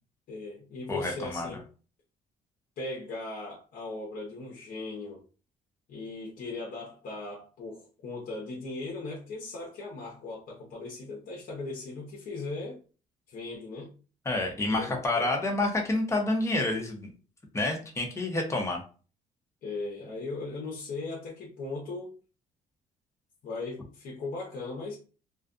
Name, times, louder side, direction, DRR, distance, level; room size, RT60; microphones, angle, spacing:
voice 1, 0.3-1.6 2.8-5.2 5.9-12.8 13.3-13.9 14.7-15.3 19.6-22.1 23.4-25.0, left 3 dB, 60° left, 0.8 m, -38 dB
voice 2, 0.9-1.5 14.3-17.1 17.5-18.8, left 2 dB, 15° left, 0.8 m, -28 dB
2.4 x 2.2 x 2.4 m
cardioid pair, 110°, 17 cm